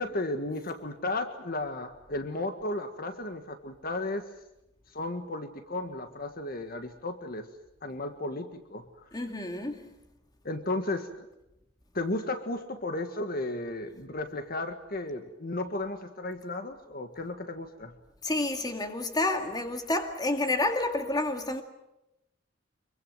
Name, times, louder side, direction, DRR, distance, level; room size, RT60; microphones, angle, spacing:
voice 1, 0.0-4.3 4.9-7.5 7.8-8.8 10.5-11.1 11.9-17.9, left 2 dB, 50° left, 1.7 m, -34 dB
voice 2, 9.1-9.9 18.2-21.6, left 2 dB, 20° left, 2.3 m, -29 dB
25.5 x 23.5 x 7.9 m
head